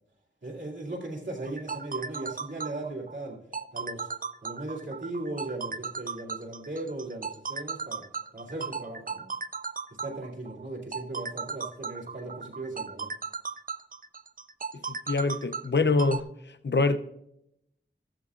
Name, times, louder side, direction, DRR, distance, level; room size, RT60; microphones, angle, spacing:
voice 1, 0.4-3.4 3.7-4.1 4.4-8.0 8.3-9.3 10.0-13.1, right 2 dB, 85° right, 2.6 m, -37 dB
sound 1, 1.4-16.2, right 5 dB, 50° right, 0.4 m, -36 dB
voice 2, 14.9-16.3 16.6-17.0, left 3 dB, 70° left, 0.6 m, -24 dB
14.0 x 12.5 x 2.5 m
wide cardioid pair, 45°, 19 cm